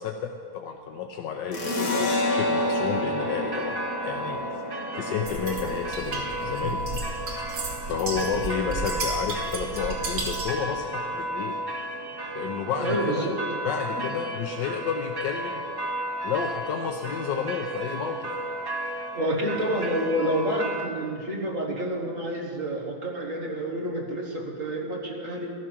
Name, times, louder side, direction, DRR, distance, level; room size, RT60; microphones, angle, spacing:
voice 1, 0.0-3.8 4.0-4.4 4.9-6.8 7.2-7.3 7.8-11.6 12.3-13.3 13.6-15.6 16.2-18.3, left 7 dB, 85° left, 3 dB, 1.4 m, -31 dB
sound 1, 1.5-8.7, left 1 dB, 50° left, 2.3 m, -30 dB
sound 2, 3.2-20.9, right 1 dB, 35° right, 0.4 m, -34 dB
sound 3, 5.3-10.6, right 2 dB, 85° right, 2.6 m, -33 dB
voice 2, 12.8-13.4 19.1-25.5, right 1 dB, 50° right, 0 dB, 1.8 m, -29 dB
14.0 x 12.5 x 6.1 m, 2.3 s
omnidirectional pair, 1.9 m